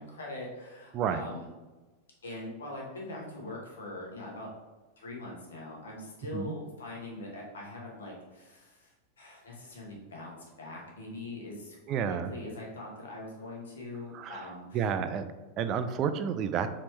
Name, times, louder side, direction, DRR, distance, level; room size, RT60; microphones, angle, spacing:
voice 1, 0.0-1.5 2.2-4.5 5.0-14.9, left 2 dB, 65° left, -2 dB, 1.2 m, -42 dB
voice 2, 11.9-12.3 14.1-14.4 14.7-15.3 15.6-16.7, right 7 dB, 35° right, 10 dB, 0.3 m, -30 dB
4.2 x 3.0 x 3.3 m, 1.2 s
figure-of-eight pair, 90°, 0 cm